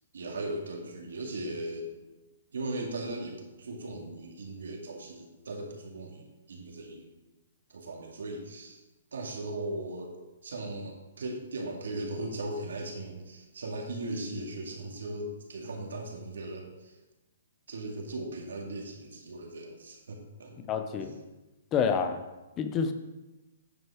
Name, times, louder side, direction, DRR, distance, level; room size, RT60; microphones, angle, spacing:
voice 1, 0.1-1.9 2.5-7.1 7.7-8.8 9.1-10.1 10.4-16.9 17.7-20.5 21.0-21.2, right 2 dB, 85° right, 1 dB, 2.2 m, -38 dB
voice 2, 20.6-21.1 21.7-22.2 22.6-22.9, left 6 dB, 20° left, 8 dB, 0.7 m, -28 dB
9.4 x 5.5 x 4.9 m, 1.1 s
hypercardioid pair, 160°, 0 cm